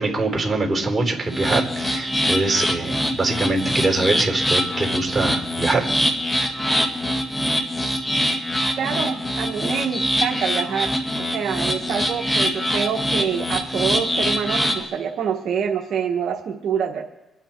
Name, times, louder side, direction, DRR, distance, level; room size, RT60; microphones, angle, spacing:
voice 1, 0.0-5.9, right 3 dB, 25° right, 1 dB, 4.2 m, -23 dB
sound 1, 1.3-14.8, equal, 20° left, 2.1 m, -24 dB
voice 2, 8.8-10.9 11.3-17.0, right 7 dB, 65° right, 1 dB, 1.2 m, -26 dB
26.5 x 9.1 x 4.5 m, 1.0 s
cardioid pair, 90°, 0 cm